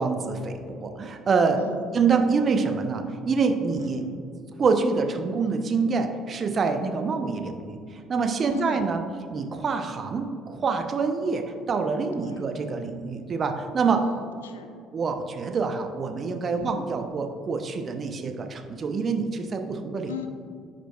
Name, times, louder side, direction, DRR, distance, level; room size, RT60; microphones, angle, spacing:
voice 1, 0.0-1.6 1.9-4.0 4.6-9.0 9.3-14.1 14.9-20.1, right 4 dB, 40° right, 6 dB, 0.6 m, -26 dB
voice 2, 1.6-1.9 3.8-4.1 8.5-8.9 12.1-12.4 13.9-14.7 16.5-16.8 20.1-20.3, left 6 dB, 85° left, 7 dB, 0.4 m, -39 dB
9.8 x 5.0 x 2.3 m, 2.4 s
hypercardioid pair, 55°, 0 cm